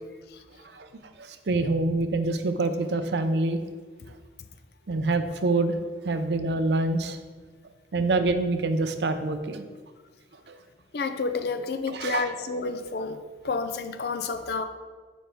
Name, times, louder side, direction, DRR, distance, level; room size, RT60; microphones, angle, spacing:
voice 1, 1.2-3.6 4.9-5.8 6.0-7.2 7.9-9.7 10.5-10.6 11.9-12.3, right 2 dB, 70° right, 9 dB, 0.5 m, -26 dB
voice 2, 10.9-14.7, left 4 dB, 60° left, 9 dB, 0.5 m, -30 dB
5.4 x 5.0 x 4.4 m, 1.4 s
head